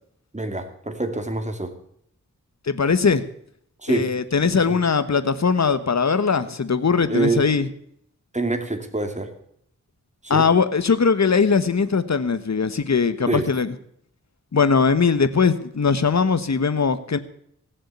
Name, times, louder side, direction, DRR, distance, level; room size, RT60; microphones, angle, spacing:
voice 1, 0.3-1.8 3.8-4.1 4.4-4.8 7.1-7.4 8.3-9.4 10.2-10.5 13.3-13.5, right 2 dB, 20° right, 6 dB, 2.4 m, -26 dB
voice 2, 2.6-3.2 3.9-7.7 10.3-13.7 14.5-17.2, left 5 dB, 60° left, 12 dB, 1.2 m, -20 dB
17.0 x 7.4 x 8.3 m, 0.69 s
wide cardioid pair, 50°, 31 cm